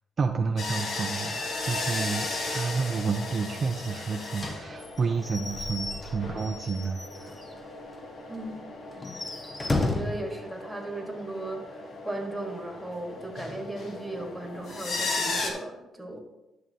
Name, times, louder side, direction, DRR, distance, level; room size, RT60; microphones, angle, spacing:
voice 1, 0.2-7.3, right 4 dB, 40° right, 4 dB, 0.5 m, -30 dB
sound 1, 0.6-15.5, left 2 dB, 55° left, 1.3 m, -36 dB
Slam / Squeak / Wood, 4.4-7.6 7.9-8.0 8.3-8.4 8.9-10.2, left 2 dB, 25° left, 0.9 m, -33 dB
voice 2, 8.3-8.9 9.8-16.2, right 2 dB, 5° right, 1 dB, 1.6 m, -37 dB
11.0 x 6.4 x 2.8 m, 0.99 s
cardioid pair, 90°, 0 cm